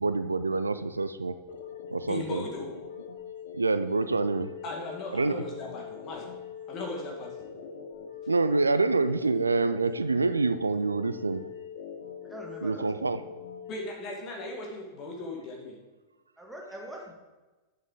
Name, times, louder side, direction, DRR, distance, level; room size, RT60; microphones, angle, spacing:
voice 1, 0.0-1.3 1.9-2.4 3.5-4.5 5.1-5.4 8.3-11.5 12.6-13.2, right 3 dB, 80° right, 13 dB, 0.4 m, -26 dB
sound 1, 1.5-13.9, left 7 dB, 65° left, 1.0 m, -43 dB
voice 2, 2.1-2.7 4.6-6.3 6.7-7.4 13.7-15.8, left 2 dB, 35° left, 0 dB, 2.1 m, -38 dB
voice 3, 12.2-12.9 16.4-17.1, right 1 dB, 5° right, -1 dB, 1.6 m, -42 dB
8.1 x 6.2 x 5.0 m, 1.2 s
figure-of-eight pair, 90°, 0 cm